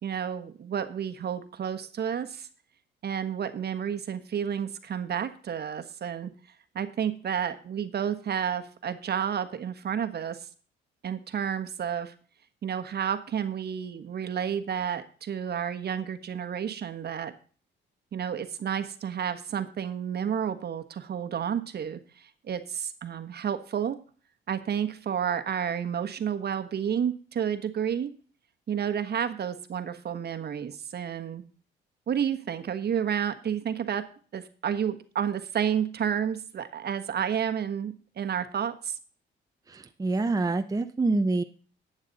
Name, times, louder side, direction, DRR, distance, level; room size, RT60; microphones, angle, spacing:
voice 1, 0.0-2.5 3.0-6.3 6.7-10.5 11.0-12.1 12.6-17.3 18.1-24.0 24.5-28.1 28.7-31.4 32.1-39.0, right 8 dB, 55° right, 9 dB, 1.3 m, -31 dB
voice 2, 39.7-41.4, right 3 dB, 20° right, 7 dB, 0.8 m, -26 dB
11.5 x 8.9 x 4.1 m, 0.40 s
cardioid pair, 90°, 20 cm